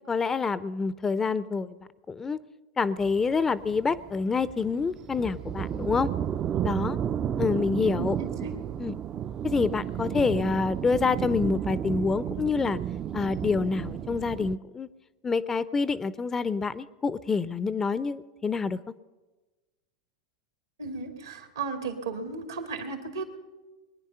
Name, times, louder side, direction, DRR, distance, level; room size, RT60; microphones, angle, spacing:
voice 1, 0.1-1.8 2.1-2.4 2.8-6.1 6.6-7.0 7.4-8.2 8.8-9.0 9.4-12.8 13.1-14.9 15.2-18.8, left 4 dB, 20° left, 16 dB, 0.5 m, -27 dB
sound 1, 3.0-14.6, right 9 dB, 30° right, 0.5 m, -33 dB
voice 2, 8.0-8.5 20.8-23.2, right 4 dB, 80° right, 5 dB, 2.3 m, -35 dB
22.0 x 10.0 x 5.6 m, 1.2 s
hypercardioid pair, 95°, 2 cm